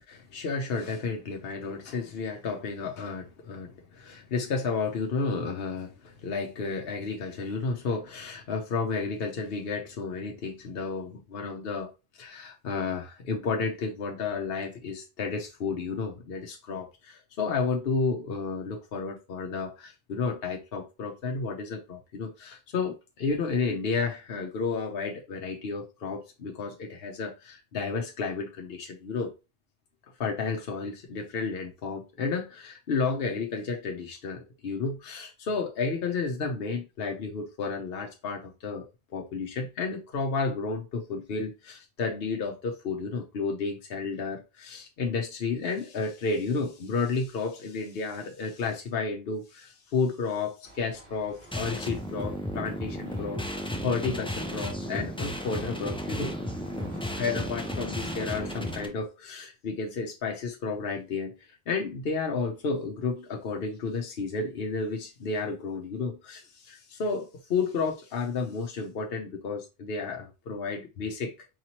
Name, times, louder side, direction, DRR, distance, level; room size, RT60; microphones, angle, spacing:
voice 1, 0.1-11.9 12.2-29.3 30.2-38.9 39.1-56.3 57.2-61.3 61.7-71.3, left 4 dB, 65° left, 1.0 m, -32 dB
sound 1, 50.6-58.9, right 1 dB, 80° right, 2.0 m, -51 dB
sound 2, 51.5-58.8, equal, 10° left, 0.3 m, -34 dB
4.9 x 3.0 x 2.8 m
omnidirectional pair, 1.0 m